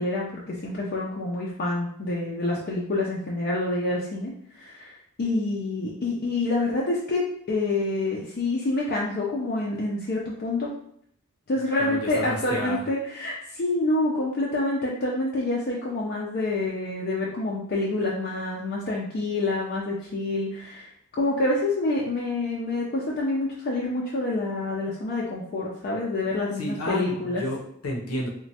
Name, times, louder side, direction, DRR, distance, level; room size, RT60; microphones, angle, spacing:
voice 1, 0.0-10.7 11.5-27.4, left 2 dB, 45° left, -4 dB, 0.4 m, -27 dB
voice 2, 11.8-12.8 26.6-28.3, left 1 dB, 80° left, -1 dB, 0.7 m, -31 dB
3.0 x 2.1 x 2.7 m, 0.67 s
head